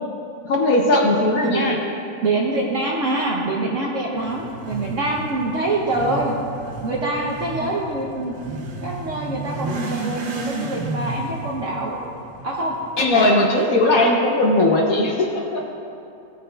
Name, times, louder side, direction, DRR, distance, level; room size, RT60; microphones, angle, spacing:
voice 1, 0.4-1.8 7.6-7.7 13.0-15.6, left 2 dB, 60° left, 0 dB, 1.0 m, -18 dB
voice 2, 1.4-1.7 2.2-6.3 6.8-8.3 8.8-12.0 12.4-13.7 13.9-14.1, right 2 dB, 60° right, -2 dB, 0.8 m, -25 dB
Motorcycle / Accelerating revving vroom, 4.2-13.1, right 3 dB, 80° right, 1.6 m, -33 dB
16.0 x 6.6 x 2.2 m, 2.7 s
omnidirectional pair, 2.0 m